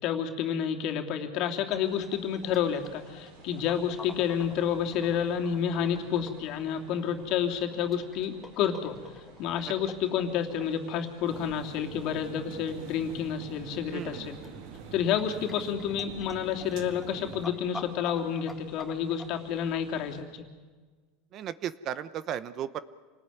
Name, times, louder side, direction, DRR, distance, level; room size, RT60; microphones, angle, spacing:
voice 1, 0.0-9.0 9.4-14.3 14.9-20.5, left 8 dB, 50° left, 2 dB, 2.9 m, -30 dB
sound 1, 1.7-19.2, left 2 dB, 10° left, 2.0 m, -48 dB
sound 2, 1.8-20.2, right 2 dB, 80° right, 7.7 m, -54 dB
sound 3, 11.3-17.5, right 8 dB, 60° right, 1.9 m, -45 dB
voice 2, 13.9-14.3 21.3-22.8, right 10 dB, 40° right, 15 dB, 0.9 m, -35 dB
27.5 x 19.5 x 9.2 m, 1.5 s
supercardioid pair, 130°, 0 cm